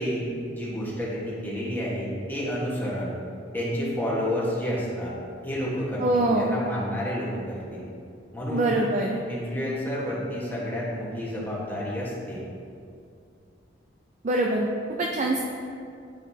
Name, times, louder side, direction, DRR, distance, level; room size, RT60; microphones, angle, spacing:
voice 1, 0.0-3.2 3.5-5.1 5.4-7.8 8.3-8.8 9.3-12.4, equal, 10° left, -7 dB, 1.3 m, -30 dB
voice 2, 6.0-6.6 8.5-9.2 14.2-14.7 15.0-15.4, right 2 dB, 40° right, 0 dB, 0.4 m, -24 dB
9.1 x 4.0 x 2.7 m, 2.4 s
head